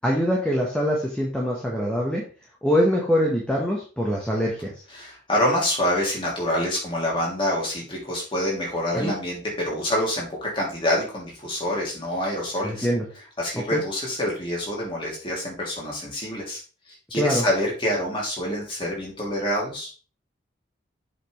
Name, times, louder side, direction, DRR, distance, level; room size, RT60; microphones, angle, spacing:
voice 1, 0.0-2.2 2.6-4.7 8.9-9.1 12.6-13.0 13.7-13.8 17.1-17.4, equal, 5° left, -3 dB, 1.3 m, -23 dB
voice 2, 4.9-12.9 13.4-16.6 17.1-19.9, left 1 dB, 25° left, -3 dB, 3.1 m, -26 dB
7.7 x 6.0 x 3.3 m, 0.37 s
head